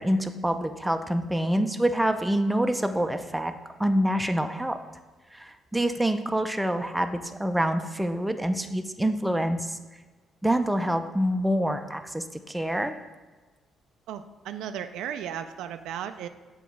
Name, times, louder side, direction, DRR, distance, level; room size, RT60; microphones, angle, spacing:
voice 1, 0.0-3.5 3.8-4.8 5.3-9.8 10.4-13.0, right 1 dB, 5° right, 7 dB, 0.5 m, -26 dB
voice 2, 14.1-16.3, right 9 dB, 85° right, 9 dB, 0.3 m, -35 dB
7.1 x 3.0 x 5.8 m, 1.3 s
cardioid pair, 90°, 0 cm